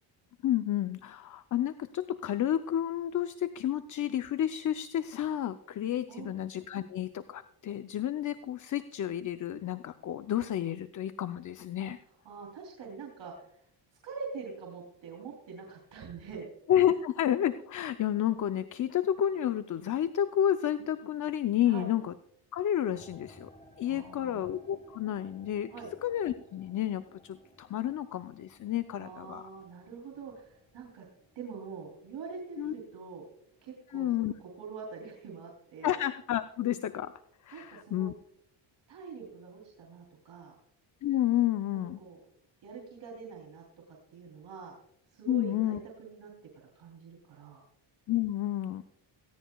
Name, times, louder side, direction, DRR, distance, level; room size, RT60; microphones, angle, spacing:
voice 1, 0.4-12.0 16.7-22.1 22.5-23.5 23.8-25.7 26.0-29.5 32.6-32.7 33.9-34.3 35.8-37.1 37.4-38.1 41.0-42.0 45.3-45.8 48.1-48.8, left 11 dB, 40° left, 11 dB, 0.6 m, -30 dB
voice 2, 6.1-6.4 12.2-13.6 14.0-16.5 21.6-21.9 23.9-24.4 25.7-25.9 29.0-31.0 31.3-33.2 33.6-36.0 37.5-38.1 38.9-40.6 41.7-42.2 42.6-44.8 45.1-46.3 46.7-47.6, right 5 dB, 65° right, -1 dB, 3.3 m, -44 dB
sound 1, 22.9-34.1 34.3-35.0 35.6-35.7, left 1 dB, 15° left, 1.5 m, -59 dB
18.0 x 16.0 x 2.3 m, 0.72 s
cardioid pair, 110°, 46 cm